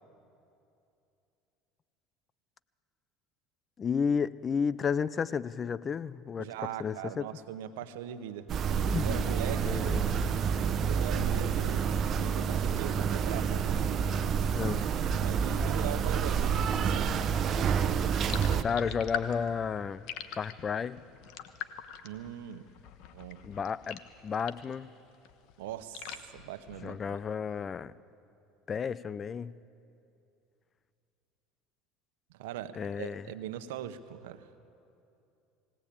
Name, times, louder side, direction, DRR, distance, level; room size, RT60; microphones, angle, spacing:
voice 1, 3.8-7.3 8.9-9.3 9.6-10.1 14.5-14.8 18.6-20.0 20.3-21.0 23.4-24.9 26.8-27.9 28.7-29.6 32.8-33.3, left 6 dB, 35° left, 0.5 m, -32 dB
voice 2, 6.4-8.5 9.0-10.1 10.6-11.8 12.1-13.7 15.2-17.1 22.0-22.7 23.1-23.4 25.6-27.0 32.3-34.5, right 11 dB, 85° right, 1.0 m, -40 dB
sound 1, 8.5-18.6, right 7 dB, 45° right, 0.9 m, -28 dB
sound 2, 18.2-24.8 25.1-27.2, left 9 dB, 65° left, 1.1 m, -43 dB
20.0 x 18.0 x 8.6 m
supercardioid pair, 90°, 0 cm